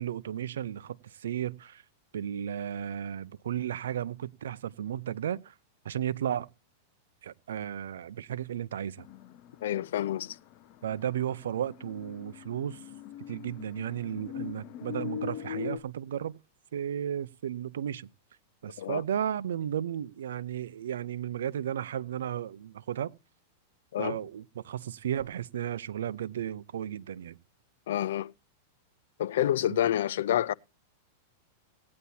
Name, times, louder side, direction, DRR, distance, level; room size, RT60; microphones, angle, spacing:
voice 1, 0.0-1.8 2.1-5.5 5.8-6.5 7.2-9.1 10.8-12.8 13.3-16.4 16.7-18.1 18.6-23.1 24.0-27.4 29.7-29.8, right 10 dB, 90° right, 0.6 m, -34 dB
sound 1, 9.0-15.8, left 11 dB, 45° left, 0.9 m, -41 dB
voice 2, 9.6-10.4 18.8-19.0 23.9-24.2 27.9-28.3 29.2-30.5, left 11 dB, 75° left, 0.5 m, -28 dB
17.5 x 9.5 x 2.8 m
supercardioid pair, 140°, 0 cm